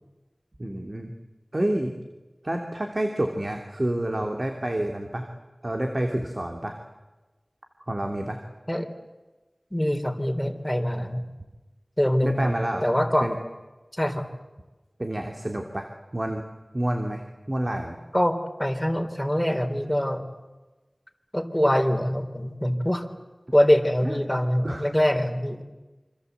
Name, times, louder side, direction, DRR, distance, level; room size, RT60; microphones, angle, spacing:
voice 1, 0.6-1.1 1.5-1.9 2.4-5.3 5.6-6.8 7.9-8.4 12.2-12.9 13.2-13.4 15.0-15.9 16.1-16.4 16.7-17.2 17.5-18.0 24.0-24.2 24.6-24.9, right 1 dB, 45° right, 3 dB, 3.0 m, -28 dB
voice 2, 9.7-11.2 12.0-12.5 12.8-13.3 13.9-14.2 18.1-20.2 21.3-23.0 23.5-25.6, equal, 10° left, 4 dB, 3.8 m, -24 dB
28.0 x 26.0 x 8.2 m, 1.2 s
wide cardioid pair, 50°, 0 cm